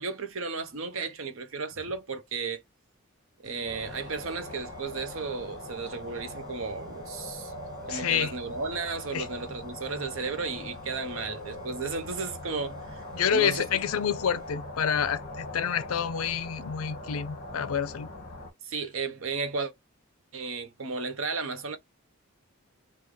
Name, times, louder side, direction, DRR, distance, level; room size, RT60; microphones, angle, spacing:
voice 1, 0.0-2.6 3.4-7.5 7.9-13.7 18.6-19.7 20.3-21.8, right 4 dB, 65° right, 0.7 m, -34 dB
sound 1, 3.4-14.8, right 3 dB, 20° right, 0.8 m, -55 dB
sound 2, 3.7-18.5, left 1 dB, 35° left, 1.3 m, -41 dB
voice 2, 7.9-8.3 9.1-9.3 13.1-18.1, left 7 dB, 75° left, 0.5 m, -28 dB
3.6 x 2.3 x 3.1 m
head